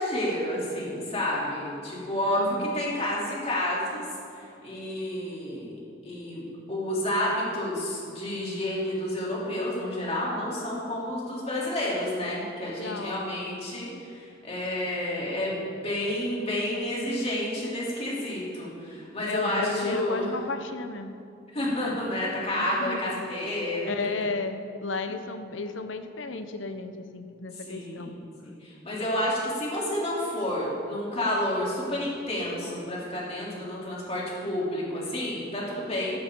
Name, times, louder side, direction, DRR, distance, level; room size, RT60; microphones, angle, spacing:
voice 1, 0.0-4.0 4.3-20.3 21.5-24.1 27.7-28.1 28.4-36.2, left 1 dB, 35° left, -6 dB, 3.2 m, -30 dB
voice 2, 2.3-2.7 12.8-13.3 19.3-21.1 22.6-23.4 23.8-28.1, left 3 dB, 75° left, 8 dB, 0.9 m, -33 dB
14.0 x 11.5 x 3.8 m, 2.5 s
head